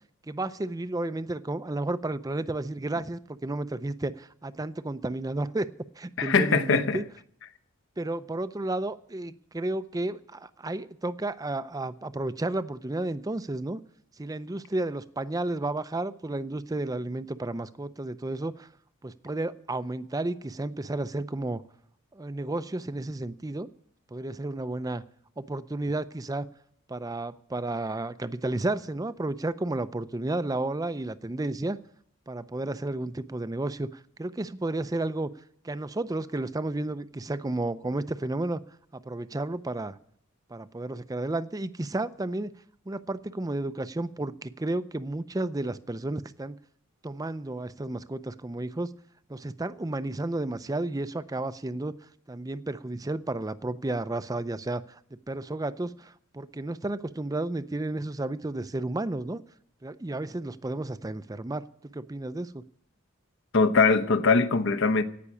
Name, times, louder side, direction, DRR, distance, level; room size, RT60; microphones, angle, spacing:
voice 1, 0.3-5.7 6.0-7.0 8.0-13.8 14.2-18.7 19.0-21.6 22.1-23.7 24.1-25.0 25.4-26.5 26.9-31.8 32.3-35.3 35.6-38.6 38.9-40.0 40.5-42.5 42.9-46.6 47.0-48.9 49.3-51.9 52.3-55.0 55.3-59.4 59.8-62.6, right 2 dB, 15° right, 0.5 m, -32 dB
voice 2, 6.2-7.0 63.5-65.0, left 4 dB, 60° left, 1.0 m, -22 dB
17.0 x 6.0 x 9.9 m
head